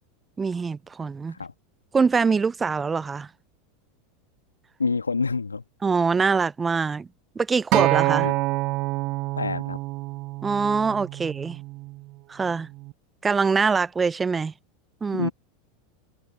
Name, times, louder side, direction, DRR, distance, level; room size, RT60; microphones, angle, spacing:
voice 1, 0.4-1.4 1.9-3.3 5.8-7.1 7.4-8.3 10.4-11.6 12.3-12.7 13.2-14.5 15.0-15.3, right 5 dB, 15° right, 0.7 m, -24 dB
voice 2, 4.8-5.6 8.1-8.4 9.4-9.8 15.1-15.3, left 4 dB, 80° left, 2.3 m, -27 dB
Acoustic guitar, 7.7-12.0 12.8-12.9, right 22 dB, 45° right, 0.5 m, -26 dB
figure-of-eight pair, 85°, 0 cm